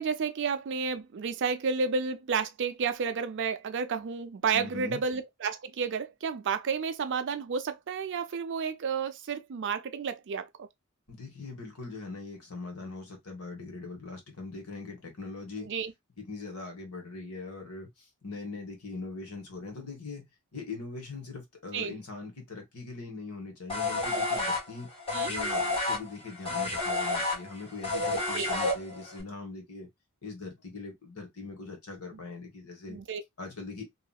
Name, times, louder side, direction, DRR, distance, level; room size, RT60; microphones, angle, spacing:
voice 1, 0.0-10.7 15.7-15.9 21.7-22.0 25.1-25.3 28.3-28.5 32.9-33.2, right 5 dB, 55° right, 0.4 m, -31 dB
voice 2, 4.5-5.0 11.1-15.7 16.2-20.2 20.5-24.9 25.3-29.9 30.2-33.0 33.4-33.8, left 3 dB, 80° left, 1.3 m, -41 dB
sound 1, 23.7-29.2, left 2 dB, 25° left, 1.4 m, -30 dB
2.8 x 2.5 x 2.3 m
head